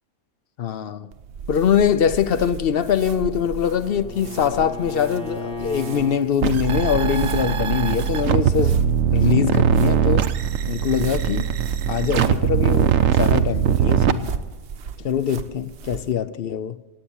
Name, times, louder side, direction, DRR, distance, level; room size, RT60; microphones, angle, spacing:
voice 1, 0.6-1.1 1.5-8.8 9.1-10.3 10.7-11.5 11.9-14.3 15.0-16.8, left 8 dB, 60° left, 0.7 m, -23 dB
sound 1, 1.1-16.1, right 6 dB, 60° right, 1.0 m, -37 dB
Bowed string instrument, 2.5-6.2, left 2 dB, 5° left, 1.2 m, -36 dB
sound 2, 6.4-14.1, right 8 dB, 90° right, 1.1 m, -20 dB
16.5 x 9.0 x 7.1 m
omnidirectional pair, 1.3 m